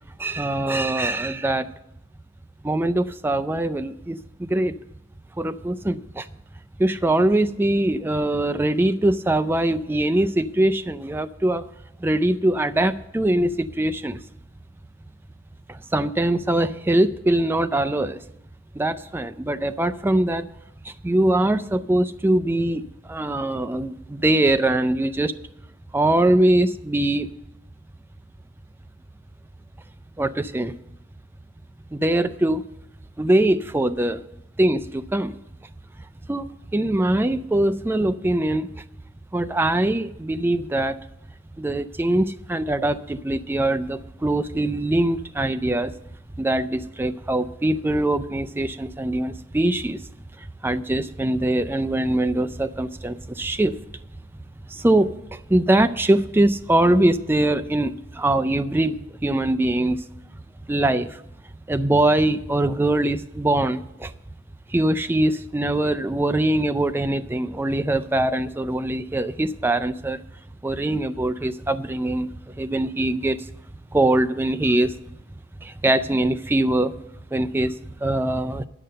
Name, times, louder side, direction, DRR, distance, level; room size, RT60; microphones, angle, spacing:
voice 1, 0.2-1.7 2.6-4.7 5.4-6.3 6.8-11.6 12.0-14.2 15.7-18.2 18.8-20.5 20.8-25.3 25.9-27.3 30.2-30.7 31.9-32.6 33.2-34.2 34.6-35.4 36.3-38.7 39.3-41.0 41.6-45.9 46.4-50.0 50.6-53.8 54.7-60.0 60.7-61.2 61.7-64.1 64.7-70.2 70.6-72.3 72.6-73.4 73.9-74.9 75.6-76.9 77.3-78.7, right 1 dB, 10° right, 10 dB, 0.4 m, -22 dB
11.0 x 6.7 x 7.6 m, 0.83 s
head